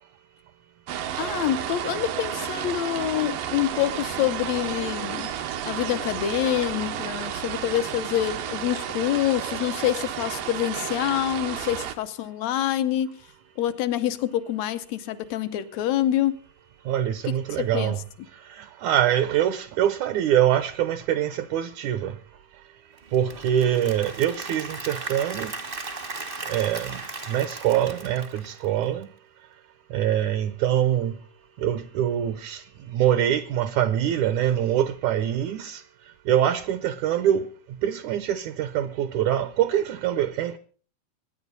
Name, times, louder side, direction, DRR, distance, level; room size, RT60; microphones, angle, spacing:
sound 1, 0.9-12.0, right 10 dB, 90° right, 2.8 m, -32 dB
voice 1, 1.2-5.3 5.7-13.2 13.6-16.3 17.6-18.0, left 12 dB, 70° left, 1.8 m, -26 dB
voice 2, 6.5-7.6 16.9-18.0 18.6-22.1 23.1-25.5 26.5-27.0 27.3-29.1 29.9-31.1 31.6-32.6 32.9-35.8 36.3-37.5 37.8-40.6, right 11 dB, 75° right, 2.0 m, -24 dB
Applause / Crowd, 23.0-29.0, right 3 dB, 35° right, 0.8 m, -37 dB
23.5 x 10.0 x 4.0 m
omnidirectional pair, 3.8 m